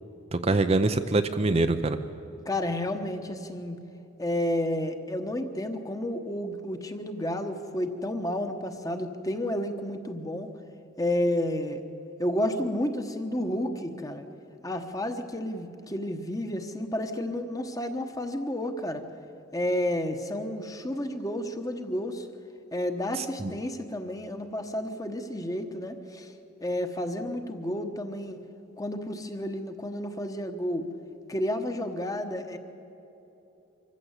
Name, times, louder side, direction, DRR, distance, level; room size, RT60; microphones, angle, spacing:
voice 1, 0.3-2.0 23.2-23.5, right 2 dB, 30° right, 8 dB, 0.6 m, -24 dB
voice 2, 2.4-3.8 4.2-10.5 11.0-11.8 12.2-14.3 14.6-19.0 19.5-22.3 22.7-26.3 26.6-28.4 28.8-30.8 31.3-32.6, left 1 dB, 15° left, 7 dB, 1.2 m, -31 dB
24.5 x 15.0 x 8.2 m, 3.0 s
head